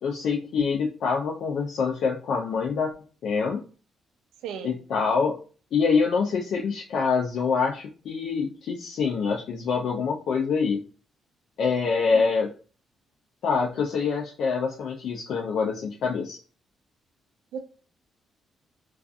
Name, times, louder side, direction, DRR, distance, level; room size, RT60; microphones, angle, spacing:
voice 1, 0.0-2.9 3.2-3.6 4.6-5.4 5.7-10.8 11.6-12.5 13.4-16.4, left 5 dB, 70° left, -1 dB, 0.4 m, -25 dB
voice 2, 4.4-4.8 12.1-12.2 17.5-17.6, right 7 dB, 85° right, 7 dB, 0.3 m, -35 dB
2.4 x 2.3 x 2.5 m, 0.36 s
cardioid pair, 90°, 0 cm